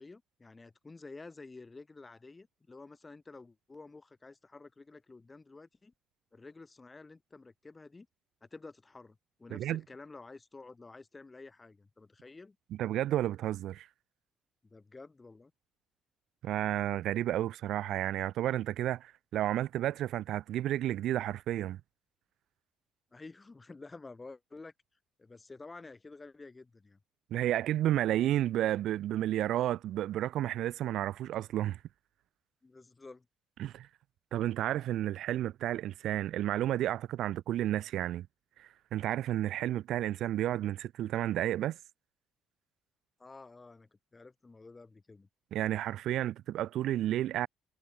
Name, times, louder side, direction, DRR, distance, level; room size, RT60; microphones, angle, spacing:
voice 1, 0.0-5.9 6.3-8.1 8.4-12.6 14.6-15.5 23.1-24.7 25.2-27.0 32.6-33.3 43.2-45.3, left 3 dB, 25° left, 4.7 m, -51 dB
voice 2, 12.8-13.9 16.4-21.8 27.3-31.8 33.6-33.9 34.3-38.3 38.6-41.8 45.5-47.5, right 13 dB, 70° right, 0.6 m, -31 dB
hypercardioid pair, 60°, 0 cm